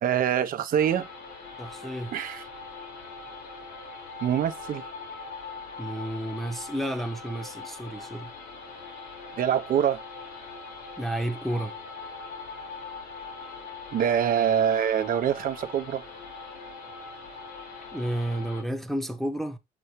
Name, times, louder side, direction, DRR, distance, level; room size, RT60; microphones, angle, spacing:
voice 1, 0.0-1.1 2.1-2.4 4.2-4.8 9.4-10.0 13.9-16.0, right 9 dB, 55° right, 0.8 m, -25 dB
sound 1, 0.8-18.6, left 4 dB, 80° left, 5.0 m, -41 dB
voice 2, 1.6-2.1 5.8-8.3 11.0-11.7 17.9-19.6, right 1 dB, ahead, 1.0 m, -31 dB
7.0 x 5.4 x 3.1 m
cardioid pair, 110°, 17 cm